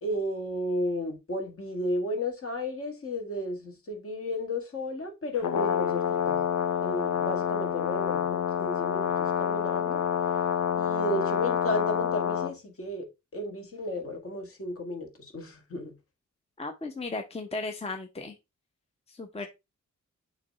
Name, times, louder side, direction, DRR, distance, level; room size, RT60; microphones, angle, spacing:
voice 1, 0.0-6.4 6.8-10.0 10.7-13.1 13.3-15.9, left 1 dB, 50° left, 1.9 m, -33 dB
Brass instrument, 5.4-12.5, left 8 dB, 75° left, 1.0 m, -27 dB
voice 2, 16.6-18.3 19.1-19.5, left 3 dB, 20° left, 0.7 m, -35 dB
6.6 x 3.1 x 5.1 m
wide cardioid pair, 145°, 30 cm